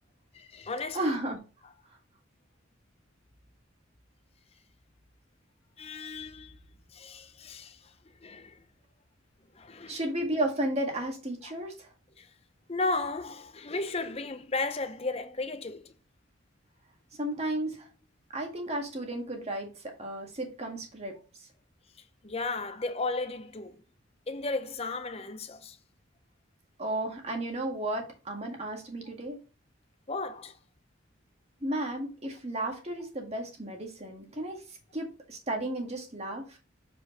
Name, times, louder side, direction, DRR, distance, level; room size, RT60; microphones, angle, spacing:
voice 1, 0.3-1.1 5.8-6.6 6.9-8.6 9.5-10.0 11.4-11.5 12.2-12.3 12.7-15.9 22.2-23.8 24.3-25.8 30.1-30.6, left 3 dB, 30° left, 0.7 m, -34 dB
voice 2, 0.9-1.4 9.9-11.9 17.2-17.9 18.3-21.5 26.8-29.4 31.6-36.6, right 1 dB, 30° right, 1.7 m, -33 dB
7.1 x 5.2 x 2.9 m
head